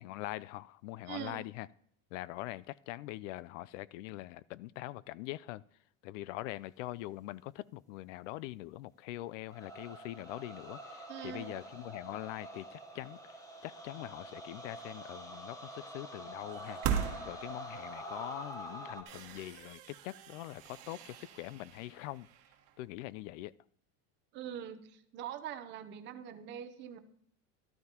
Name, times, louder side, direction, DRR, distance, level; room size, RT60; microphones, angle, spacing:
voice 1, 0.0-1.7 2.1-5.6 6.0-22.3 22.8-23.5, left 16 dB, 65° left, 0.5 m, -43 dB
voice 2, 1.1-1.4 11.1-11.6 24.3-27.0, right 10 dB, 30° right, 0.7 m, -43 dB
sound 1, 9.5-19.0, right 1 dB, 10° left, 1.0 m, -46 dB
sound 2, 16.5-17.9 18.5-18.6 19.0-22.9, right 8 dB, 45° right, 1.4 m, -40 dB
13.0 x 12.5 x 2.9 m
supercardioid pair, 170°, 40 cm